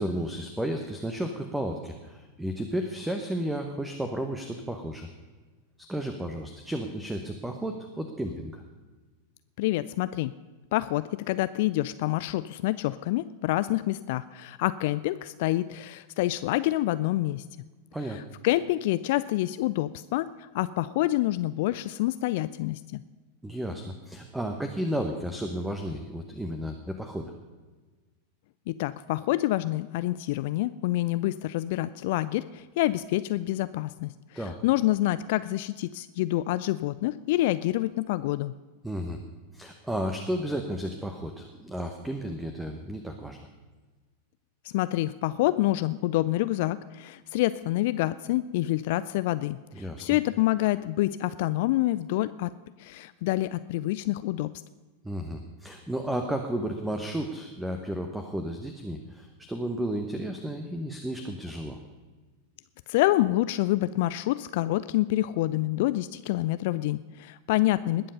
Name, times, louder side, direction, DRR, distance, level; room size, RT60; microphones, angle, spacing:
voice 1, 0.0-5.1 5.9-8.6 17.9-18.2 23.4-27.3 34.3-34.6 38.8-39.2 39.5-43.4 49.7-50.1 55.0-61.8, right 1 dB, 5° right, 5 dB, 1.1 m, -33 dB
voice 2, 9.6-10.3 10.7-17.4 18.4-23.0 28.7-38.5 44.7-52.5 52.8-54.5 62.9-68.1, left 16 dB, 50° left, 15 dB, 0.3 m, -27 dB
20.5 x 7.6 x 5.4 m, 1.3 s
figure-of-eight pair, 90°, 0 cm